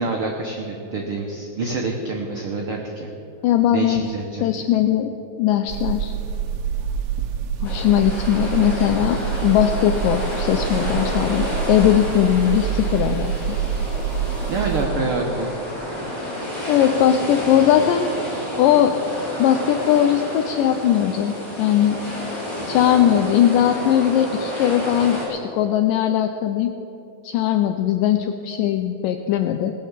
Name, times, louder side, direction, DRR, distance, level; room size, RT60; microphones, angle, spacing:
voice 1, 0.0-3.1 3.7-4.4 14.5-15.5, right 3 dB, 85° right, 0 dB, 1.2 m, -26 dB
voice 2, 3.4-4.0 4.4-5.1 5.4-6.1 7.6-13.6 16.7-18.1 18.6-19.0 19.4-22.0 22.7-26.7 27.2-29.7, left 11 dB, 80° left, 7 dB, 2.1 m, -19 dB
sound 1, 5.7-14.9, right 7 dB, 70° right, 1.8 m, -26 dB
sound 2, 7.6-25.3, left 1 dB, 25° left, 4.0 m, -30 dB
20.0 x 6.6 x 7.3 m, 2.9 s
omnidirectional pair, 4.1 m